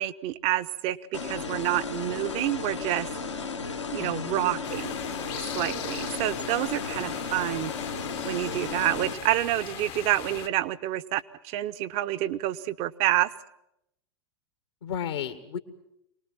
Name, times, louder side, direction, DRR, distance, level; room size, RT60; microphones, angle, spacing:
voice 1, 0.0-3.1 3.9-5.0 5.3-7.7 8.2-13.3, right 14 dB, 40° right, 13 dB, 0.9 m, -28 dB
sound 1, 1.1-9.1, left 4 dB, 90° left, 1.9 m, -34 dB
voice 2, 4.0-4.7 14.8-15.6, left 8 dB, 70° left, 10 dB, 1.5 m, -34 dB
sound 2, 4.6-10.5, left 12 dB, 35° left, 0.9 m, -39 dB
24.5 x 19.5 x 7.5 m, 0.82 s
figure-of-eight pair, 90°, 15 cm